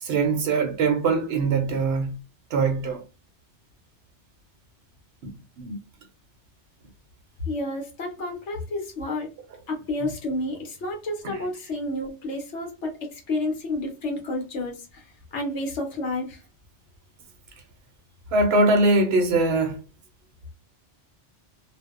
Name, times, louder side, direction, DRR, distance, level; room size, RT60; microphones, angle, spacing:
voice 1, 0.0-2.2 2.5-3.0 5.2-5.8 11.2-11.4 18.3-19.8, right 3 dB, 65° right, 0.8 m, -22 dB
voice 2, 7.5-9.3 9.7-16.4, left 2 dB, 80° left, 1.1 m, -30 dB
2.6 x 2.0 x 2.4 m
omnidirectional pair, 1.2 m